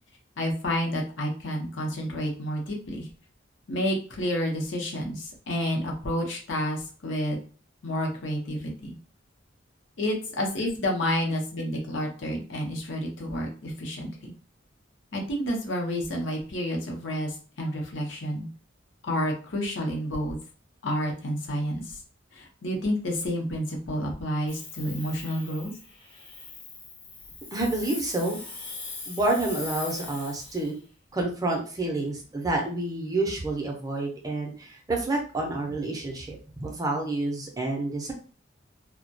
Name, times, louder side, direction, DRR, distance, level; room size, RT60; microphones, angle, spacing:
voice 1, 0.4-3.1 3.7-7.4 7.8-8.9 10.0-14.3 15.1-18.5 19.0-20.4 20.8-22.0 22.3-25.7, equal, 75° left, 0 dB, 0.7 m, -30 dB
Hiss, 24.5-30.8, left 3 dB, 30° left, 0.5 m, -41 dB
voice 2, 27.5-28.4 29.1-30.7 31.1-38.1, right 2 dB, 20° right, 0 dB, 0.5 m, -29 dB
2.2 x 2.1 x 2.6 m, 0.39 s
head